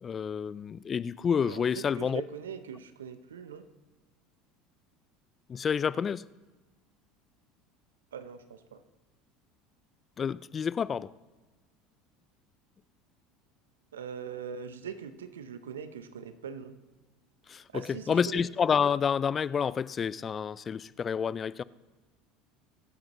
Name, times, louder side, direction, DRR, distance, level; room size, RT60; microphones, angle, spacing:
voice 1, 0.0-2.2 5.5-6.3 10.2-11.1 17.5-21.6, left 7 dB, 35° left, 0.3 m, -29 dB
voice 2, 1.4-3.7 8.1-8.8 13.9-16.8 17.7-18.4, right 7 dB, 90° right, 0.8 m, -41 dB
23.0 x 8.8 x 3.1 m
hypercardioid pair, 80°, 0 cm